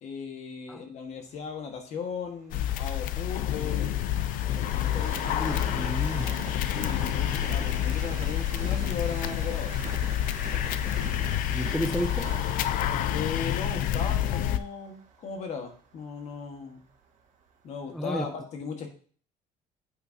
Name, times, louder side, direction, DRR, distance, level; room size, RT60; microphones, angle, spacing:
voice 1, 0.0-4.0 4.8-5.2 6.7-9.8 10.5-10.8 13.1-16.8 17.6-18.9, left 5 dB, 50° left, 4 dB, 1.6 m, -37 dB
Train, 1.3-17.3 17.9-18.0, right 6 dB, 55° right, 1.6 m, -44 dB
sound 1, 2.5-14.6, left 11 dB, 65° left, 0.5 m, -28 dB
voice 2, 5.3-6.3 11.5-12.3 17.9-18.3, equal, ahead, 5 dB, 0.4 m, -31 dB
8.8 x 8.0 x 2.8 m, 0.44 s
cardioid pair, 170°, 15 cm